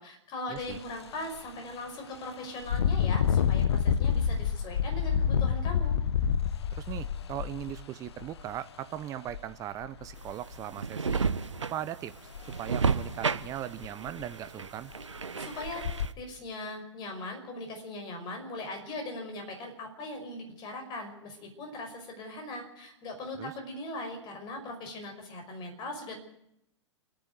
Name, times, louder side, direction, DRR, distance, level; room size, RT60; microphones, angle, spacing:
voice 1, 0.0-5.9 15.3-15.8 16.2-26.2, left 2 dB, 30° left, 4 dB, 5.6 m, -40 dB
Engine, 0.6-0.8 1.2-1.4 2.6-8.4 9.3-9.4 9.8-10.6 12.3-12.5 12.8-12.9 13.4-13.5 13.8-14.3 14.9-15.0 15.6-16.1, left 8 dB, 60° left, 0.9 m, -28 dB
voice 2, 6.7-11.3 11.7-12.1 12.4-14.9 23.4-23.5, right 11 dB, 20° right, 13 dB, 0.7 m, -39 dB
sound 1, 10.2-16.1, right 5 dB, 75° right, 1.0 m, -32 dB
27.5 x 10.0 x 9.5 m, 0.79 s
figure-of-eight pair, 105°, 16 cm